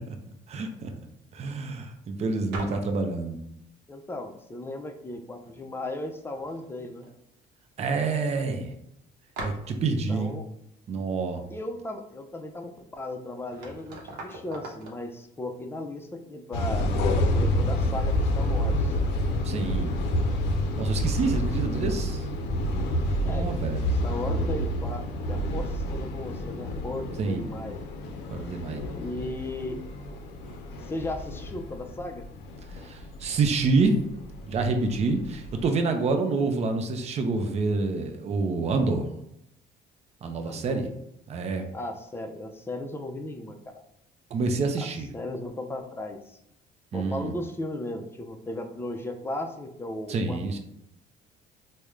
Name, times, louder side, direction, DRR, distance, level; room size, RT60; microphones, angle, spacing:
voice 1, 0.5-0.9 1.3-3.4 7.8-8.7 9.4-10.4 10.9-11.4 19.4-20.0 20.8-22.2 23.3-23.9 27.2-27.4 28.3-28.8 32.8-34.0 34.5-39.1 40.2-40.9 41.3-41.6 44.3-45.1 46.9-47.3 50.1-50.6, right 3 dB, 40° right, 5 dB, 0.5 m, -27 dB
sound 1, 2.5-3.0 5.0-5.1 5.4-6.0 6.3-7.1 7.4-7.5 8.0-8.1 9.4-9.9 12.9-13.0 13.4-15.0, right 2 dB, 85° right, 0.8 m, -40 dB
voice 2, 3.9-7.1 9.9-10.5 11.5-16.9 17.3-19.0 23.2-27.8 28.9-29.8 30.8-32.3 40.4-40.8 41.7-43.8 44.8-46.4 46.9-50.6, left 1 dB, 15° left, 5 dB, 0.4 m, -36 dB
sound 2, 16.5-35.6, left 1 dB, 80° left, 0.5 m, -29 dB
3.6 x 2.1 x 3.1 m, 0.79 s
cardioid pair, 110°, 17 cm